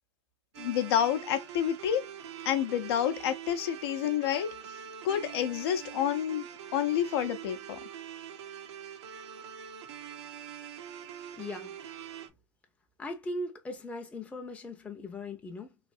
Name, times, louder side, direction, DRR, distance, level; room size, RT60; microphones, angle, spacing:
sound 1, 0.5-12.3, right 9 dB, 70° right, 0.7 m, -44 dB
voice 1, 0.6-2.1 2.4-4.7 5.0-6.5 6.7-7.8, left 10 dB, 60° left, 0.7 m, -29 dB
voice 2, 11.4-11.8 13.0-15.8, left 2 dB, 10° left, 0.6 m, -39 dB
3.2 x 2.6 x 2.5 m
hypercardioid pair, 125°, 15 cm